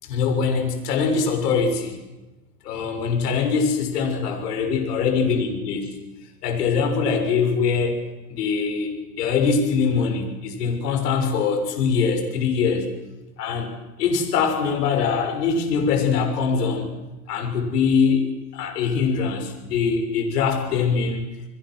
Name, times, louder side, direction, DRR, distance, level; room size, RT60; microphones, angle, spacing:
voice 1, 0.0-2.0 2.6-6.0 6.4-8.0 8.3-8.9 9.2-12.9 13.4-13.7 14.0-17.0 17.3-21.3, left 5 dB, 75° left, 5 dB, 6.6 m, -23 dB
30.0 x 21.5 x 6.3 m, 1.1 s
supercardioid pair, 140°, 48 cm